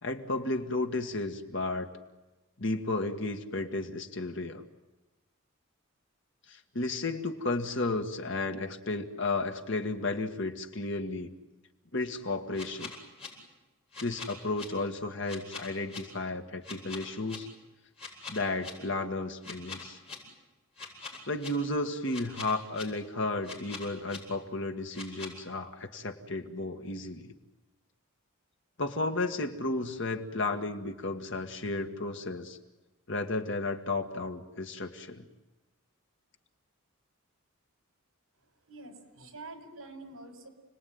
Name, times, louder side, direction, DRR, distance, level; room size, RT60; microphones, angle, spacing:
voice 1, 0.0-1.9 2.6-4.6 6.5-11.3 11.9-12.9 14.0-17.5 18.3-20.0 21.3-27.3 28.8-32.6 33.1-35.3, left 2 dB, 55° left, 5 dB, 1.8 m, -33 dB
sound 1, 12.5-13.3 13.9-14.6 15.3-16.0 16.6-17.4 18.0-18.7 19.4-20.1 20.8-21.5 22.1-22.8 23.4-24.2 24.9-25.3, left 4 dB, 30° left, 7.6 m, -42 dB
voice 2, 38.7-40.5, right 2 dB, 70° right, 5 dB, 5.8 m, -46 dB
30.0 x 20.5 x 9.5 m, 1.1 s
head